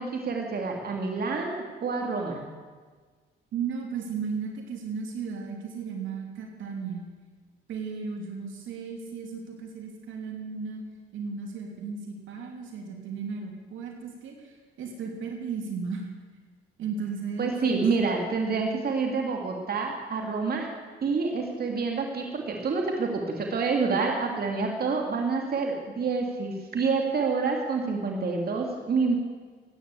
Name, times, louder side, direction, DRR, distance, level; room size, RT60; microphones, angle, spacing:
voice 1, 0.0-1.5 1.8-2.5 17.4-20.7 21.0-29.2, right 4 dB, 50° right, 1 dB, 2.7 m, -27 dB
voice 2, 3.5-7.0 7.7-10.8 11.1-16.1 16.8-17.8, right 5 dB, 80° right, 1 dB, 3.0 m, -35 dB
15.5 x 9.6 x 8.4 m, 1.4 s
cardioid pair, 90°, 20 cm